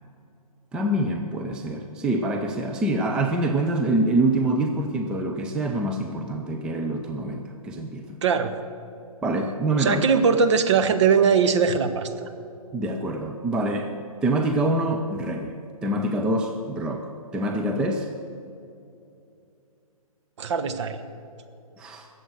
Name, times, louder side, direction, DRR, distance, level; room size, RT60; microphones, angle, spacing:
voice 1, 0.7-8.2 9.2-10.0 12.7-13.9 14.2-18.1 21.8-22.1, right 1 dB, 5° right, 3 dB, 0.4 m, -25 dB
voice 2, 8.2-8.5 9.8-12.3 20.4-21.0, right 6 dB, 50° right, 7 dB, 1.1 m, -21 dB
20.0 x 7.5 x 6.5 m, 2.6 s
figure-of-eight pair, 135°, 19 cm